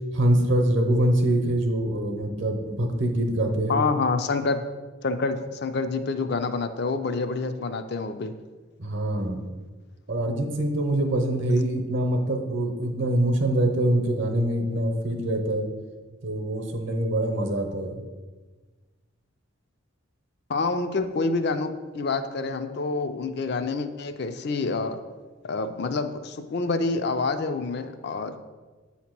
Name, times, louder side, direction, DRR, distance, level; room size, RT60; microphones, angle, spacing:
voice 1, 0.1-3.8 8.8-9.4 10.1-15.7 16.2-18.0, right 1 dB, 60° right, 5 dB, 0.8 m, -24 dB
voice 2, 3.7-4.6 5.0-8.3 20.5-25.0 25.4-28.4, left 3 dB, 50° left, 9 dB, 0.4 m, -27 dB
8.2 x 2.9 x 5.9 m, 1.3 s
head